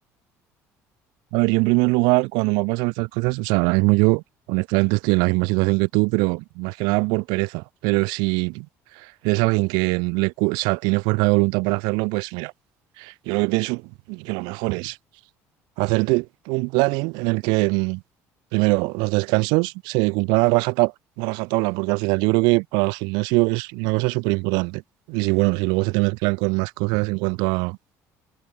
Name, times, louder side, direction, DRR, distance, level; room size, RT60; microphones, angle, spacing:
voice 1, 1.3-4.2 4.5-8.7 9.2-12.5 13.0-15.0 15.8-18.0 18.5-24.8 25.1-27.8, right 29 dB, 80° right, 3.4 m, -22 dB
supercardioid pair, 75°, 7 cm